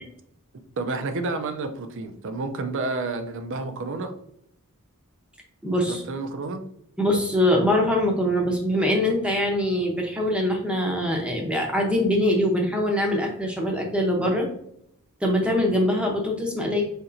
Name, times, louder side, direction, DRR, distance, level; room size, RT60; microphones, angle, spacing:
voice 1, 0.8-4.1 5.9-6.6, right 3 dB, 60° right, 7 dB, 0.5 m, -30 dB
voice 2, 5.6-6.0 7.0-14.5 15.2-16.8, left 1 dB, 5° right, 0 dB, 0.6 m, -23 dB
4.2 x 2.9 x 2.5 m, 0.73 s
head